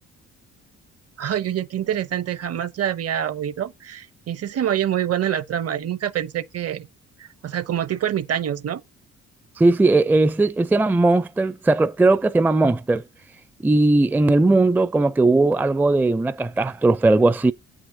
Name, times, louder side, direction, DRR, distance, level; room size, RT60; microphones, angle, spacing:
voice 1, 1.2-6.9 7.4-8.8, right 10 dB, 55° right, 0.8 m, -26 dB
voice 2, 9.6-13.0 13.6-17.5, right 2 dB, 5° right, 0.4 m, -18 dB
8.1 x 6.3 x 3.9 m
cardioid pair, 90°, 30 cm